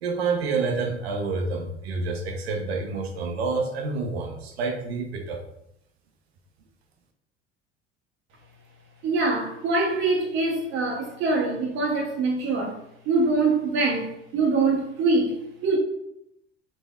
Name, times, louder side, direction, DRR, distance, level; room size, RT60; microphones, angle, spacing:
voice 1, 0.0-5.4, right 4 dB, 80° right, 3 dB, 0.5 m, -28 dB
voice 2, 9.0-12.8 13.1-15.8, right 3 dB, 40° right, -1 dB, 0.7 m, -24 dB
3.2 x 2.2 x 2.2 m, 0.79 s
figure-of-eight pair, 65°, 31 cm